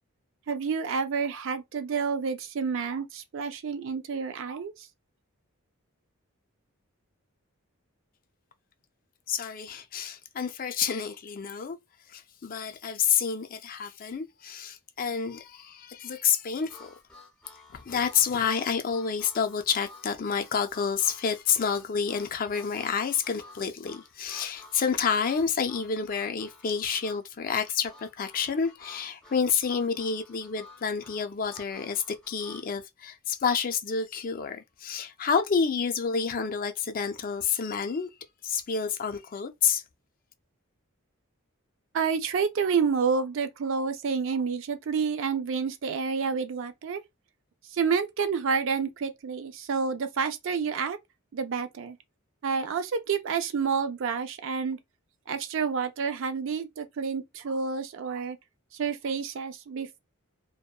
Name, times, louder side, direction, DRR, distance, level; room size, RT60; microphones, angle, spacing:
voice 1, 0.5-4.9 41.9-47.0 47.7-51.0 51.3-52.0 52.4-54.8 55.3-58.4 58.7-60.0, right 5 dB, 60° right, 0.4 m, -29 dB
voice 2, 9.3-11.8 12.1-16.9 17.7-38.1 38.4-39.8, left 6 dB, 40° left, 0.4 m, -29 dB
Harmonica, 16.7-32.7, left 2 dB, 5° left, 0.7 m, -52 dB
2.7 x 2.1 x 2.2 m
head